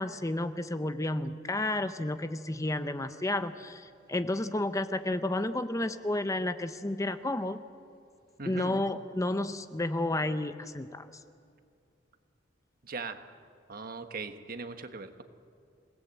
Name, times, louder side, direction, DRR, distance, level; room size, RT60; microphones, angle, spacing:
voice 1, 0.0-7.6 8.4-11.1, left 1 dB, 20° left, 10 dB, 0.7 m, -31 dB
voice 2, 8.4-8.8 12.9-13.2 13.7-15.2, right 4 dB, 50° right, 8 dB, 1.4 m, -39 dB
28.0 x 18.0 x 8.3 m, 2.4 s
head